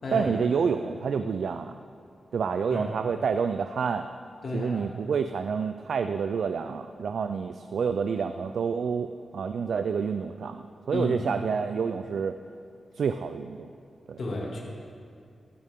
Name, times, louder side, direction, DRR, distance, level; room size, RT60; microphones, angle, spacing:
voice 1, 0.1-1.7 2.3-4.1 4.5-12.4 13.0-13.7 14.1-14.2, right 6 dB, 80° right, 8 dB, 0.4 m, -28 dB
voice 2, 4.4-4.9 10.9-11.2 14.2-14.6, left 2 dB, 60° left, -3 dB, 2.4 m, -32 dB
15.5 x 12.5 x 3.7 m, 2.4 s
wide cardioid pair, 135°, 0 cm